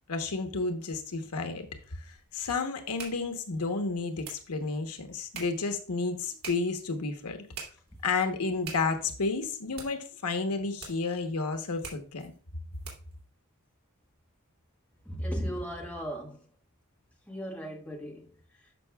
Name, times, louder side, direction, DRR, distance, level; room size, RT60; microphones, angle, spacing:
voice 1, 0.1-1.7 2.0-7.4 8.0-12.3, left 4 dB, 90° left, 1.1 m, -31 dB
sound 1, 1.6-13.2, right 5 dB, 75° right, 2.8 m, -48 dB
voice 2, 15.0-16.4 17.3-18.7, equal, 5° left, 1.4 m, -36 dB
12.5 x 5.6 x 2.3 m
head